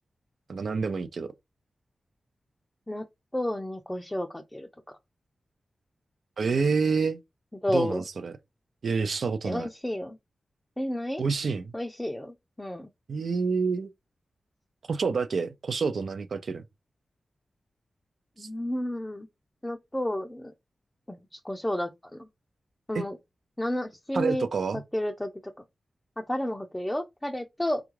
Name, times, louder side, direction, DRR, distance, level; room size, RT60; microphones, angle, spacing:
voice 1, 0.5-1.3 6.4-7.2 7.7-8.3 8.8-9.7 11.2-11.7 13.1-13.9 14.9-16.6 18.4-18.5 22.9-23.1 24.1-24.8, right 5 dB, 75° right, 0.3 m, -28 dB
voice 2, 3.3-4.7 7.6-8.0 9.4-10.2 10.8-11.5 11.7-12.9 18.4-19.3 19.6-20.5 21.1-22.3 22.9-23.2 23.6-24.5 24.9-25.3 26.2-27.8, left 1 dB, 15° left, 0.4 m, -31 dB
3.4 x 2.3 x 3.1 m
cardioid pair, 45°, 0 cm